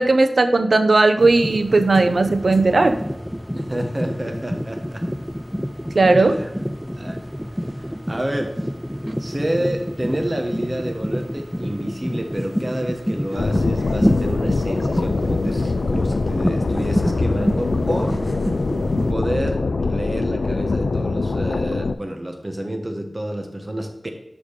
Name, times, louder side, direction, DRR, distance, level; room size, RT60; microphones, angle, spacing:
voice 1, 0.0-3.0 5.9-6.4, right 3 dB, 70° right, 8 dB, 0.7 m, -16 dB
sound 1, 1.2-19.1, equal, ahead, 0.4 m, -27 dB
voice 2, 3.6-5.0 6.2-6.5 7.0-7.2 7.5-8.5 9.2-18.1 19.1-24.1, right 1 dB, 25° right, 3 dB, 1.2 m, -29 dB
sound 2, 13.4-22.0, left 3 dB, 90° left, 0.3 m, -23 dB
6.6 x 5.0 x 5.1 m, 0.91 s
wide cardioid pair, 70°, 0 cm